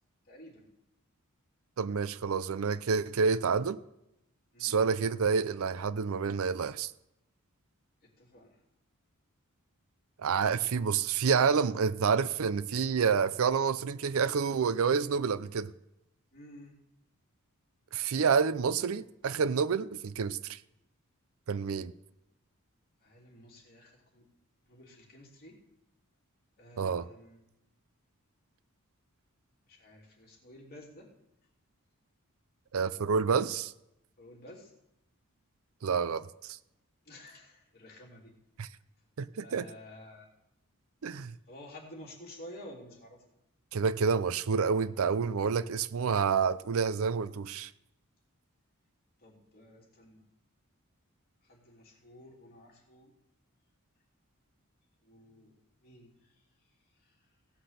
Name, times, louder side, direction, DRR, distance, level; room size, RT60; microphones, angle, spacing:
voice 1, 0.3-0.7 4.5-4.7 8.2-8.5 16.3-16.7 23.0-24.2 24.7-25.6 26.6-27.4 29.7-31.1 34.2-34.7 37.0-38.3 39.4-40.3 41.5-43.2 49.2-50.2 51.4-53.1 55.0-55.5 55.8-56.3 57.0-57.1, left 1 dB, 45° left, 3.1 m, -51 dB
voice 2, 1.8-3.8 4.6-6.9 10.2-15.7 17.9-20.6 21.5-21.9 26.8-27.1 32.7-33.7 35.8-36.6 38.6-38.7 39.2-39.7 41.0-41.3 43.7-47.7, right 6 dB, 65° right, 0.5 m, -28 dB
16.5 x 5.9 x 6.7 m
head